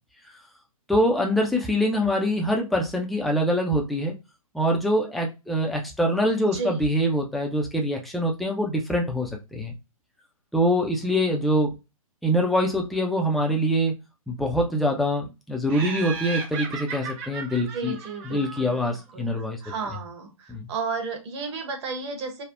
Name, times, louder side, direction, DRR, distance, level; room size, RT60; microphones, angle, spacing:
voice 1, 0.9-4.1 4.5-9.7 10.5-11.7 12.2-13.9 14.3-18.0 18.3-19.6 20.5-20.7, equal, ahead, 0 dB, 0.4 m, -24 dB
voice 2, 6.5-6.9 17.7-22.4, right 4 dB, 50° right, 4 dB, 1.1 m, -33 dB
Laughter, 15.7-19.0, right 5 dB, 30° right, 0.7 m, -35 dB
3.4 x 2.0 x 2.4 m, 0.25 s
hypercardioid pair, 125°, 19 cm